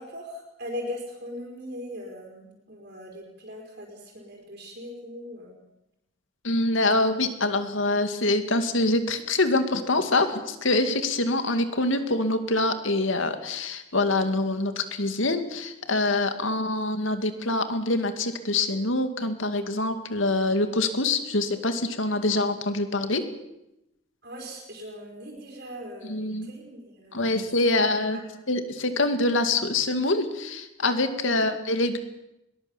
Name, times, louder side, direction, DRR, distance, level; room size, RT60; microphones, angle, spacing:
voice 1, 0.0-5.6 24.2-27.5 27.7-27.9 28.1-28.3 31.3-31.5, left 1 dB, 50° right, -1 dB, 5.0 m, -40 dB
voice 2, 6.4-23.3 26.0-26.5 27.1-28.2 28.5-32.0, left 2 dB, 75° left, 8 dB, 2.2 m, -25 dB
21.5 x 20.5 x 7.3 m, 0.89 s
head